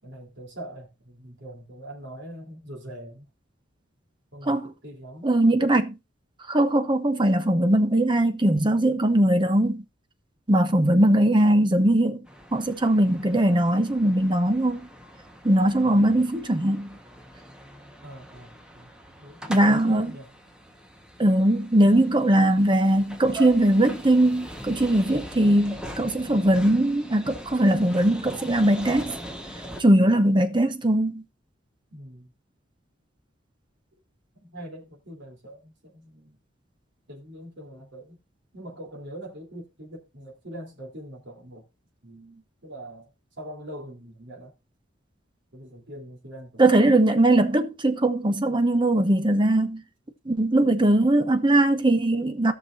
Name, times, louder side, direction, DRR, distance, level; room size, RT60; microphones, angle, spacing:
voice 1, 0.0-3.3 4.3-5.4 15.8-16.3 18.0-18.9 19.2-20.3 31.9-32.3 34.3-36.4 37.1-38.2 38.5-41.6 42.0-43.1 43.4-44.5 45.5-46.9, right 1 dB, 65° right, 3.5 m, -43 dB
voice 2, 5.2-6.0 6.5-9.8 10.5-12.2 12.5-14.9 15.4-17.0 19.5-20.1 21.2-29.2 29.8-31.2 46.6-49.8 50.3-52.5, right 1 dB, 25° right, 0.9 m, -20 dB
sound 1, 12.3-29.8, equal, 5° right, 1.3 m, -42 dB
17.0 x 6.1 x 2.6 m
head